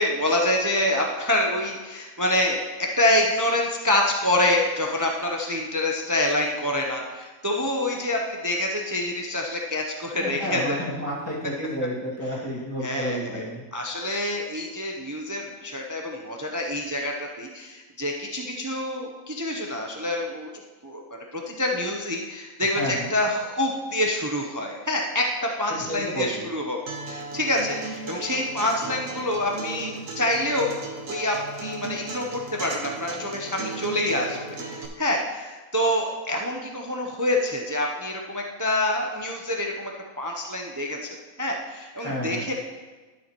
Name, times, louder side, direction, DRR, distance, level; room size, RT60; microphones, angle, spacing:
voice 1, 0.0-10.8 12.8-13.4 13.7-20.5 20.8-26.8 27.1-30.7 31.1-39.9 40.2-42.5, left 1 dB, 20° right, 1 dB, 0.4 m, -26 dB
voice 2, 10.2-13.7 22.7-23.1 25.9-26.4 42.0-42.4, equal, 10° left, -7 dB, 2.1 m, -30 dB
Acoustic guitar, 26.9-34.9, right 3 dB, 70° right, 1.5 m, -36 dB
12.5 x 7.0 x 3.0 m, 1.3 s
omnidirectional pair, 1.4 m